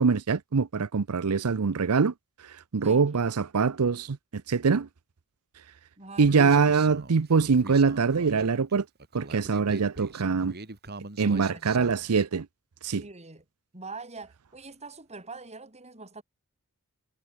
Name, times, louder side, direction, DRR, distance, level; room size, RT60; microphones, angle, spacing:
voice 1, 0.0-2.1 2.7-4.9 6.2-8.8 9.1-10.5 11.2-12.5 12.8-13.0, right 5 dB, 90° right, 0.6 m, -24 dB
voice 2, 6.0-6.3 11.2-11.9 12.9-13.4 13.7-16.2, right 3 dB, 30° right, 6.3 m, -43 dB
Human voice, 6.2-12.2, right 2 dB, 45° right, 2.4 m, -42 dB
head